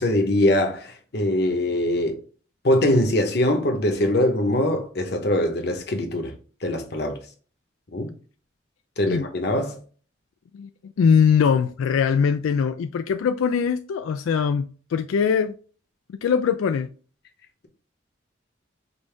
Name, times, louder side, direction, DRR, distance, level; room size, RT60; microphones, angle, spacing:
voice 1, 0.0-2.2 2.6-6.3 6.6-7.2 7.9-8.1 9.0-9.8, left 1 dB, 55° left, 0.9 m, -22 dB
voice 2, 11.0-15.5 16.1-16.9, left 6 dB, 90° left, 0.3 m, -21 dB
5.3 x 2.6 x 3.3 m
head